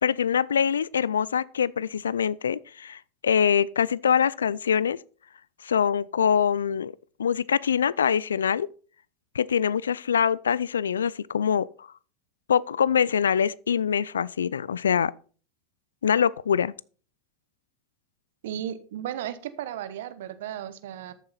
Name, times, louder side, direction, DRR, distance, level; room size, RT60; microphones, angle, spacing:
voice 1, 0.0-5.0 5.6-6.9 7.2-8.7 9.3-11.9 12.5-15.1 16.0-16.7, left 7 dB, 85° left, 0.4 m, -24 dB
voice 2, 18.4-21.1, right 11 dB, 70° right, 1.1 m, -35 dB
13.5 x 7.4 x 4.1 m
hypercardioid pair, 85°, 0 cm